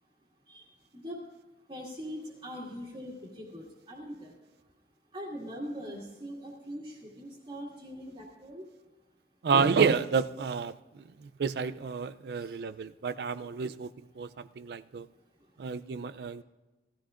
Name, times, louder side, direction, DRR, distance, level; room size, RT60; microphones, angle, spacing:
voice 1, 1.7-4.3 5.1-8.7, equal, 30° right, -7 dB, 2.0 m, -41 dB
voice 2, 9.4-15.1 15.6-16.4, right 5 dB, 65° right, 14 dB, 0.4 m, -30 dB
18.0 x 14.0 x 2.5 m, 1.1 s
head